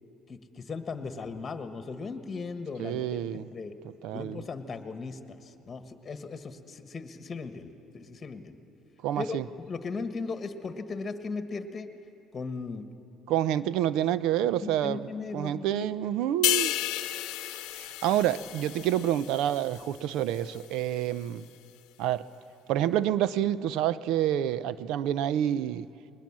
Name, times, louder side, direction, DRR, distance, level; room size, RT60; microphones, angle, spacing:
voice 1, 0.3-3.8 4.1-7.7 7.9-8.6 9.2-11.9 12.3-12.9 14.6-15.8, left 4 dB, 30° left, 8 dB, 1.6 m, -37 dB
voice 2, 2.8-3.4 4.0-4.4 9.0-9.4 13.3-16.7 17.8-21.4 22.0-22.3 22.7-25.9, right 11 dB, 80° right, 17 dB, 0.5 m, -28 dB
sound 1, 16.4-20.0 20.3-20.6, left 15 dB, 80° left, 0.8 m, -32 dB
21.5 x 20.0 x 7.5 m, 2.7 s
cardioid pair, 105°, 0 cm